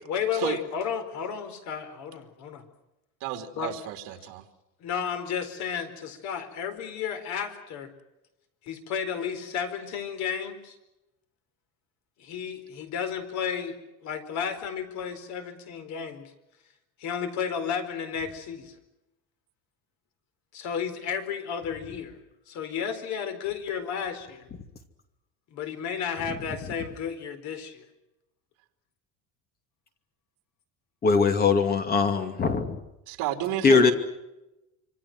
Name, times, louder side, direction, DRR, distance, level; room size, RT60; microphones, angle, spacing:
voice 1, 0.1-2.6 3.6-3.7 4.8-7.9 8.6-10.8 12.2-13.7 14.0-16.3 17.0-18.8 20.5-22.2 22.5-24.5 25.5-27.9, left 7 dB, 55° left, 9 dB, 4.5 m, -32 dB
voice 2, 3.2-4.4 33.1-33.9, right 12 dB, 65° right, 5 dB, 3.6 m, -31 dB
voice 3, 31.0-32.8 33.6-33.9, left 5 dB, 25° left, 8 dB, 2.5 m, -21 dB
26.5 x 25.5 x 6.3 m, 0.95 s
cardioid pair, 170°, 35 cm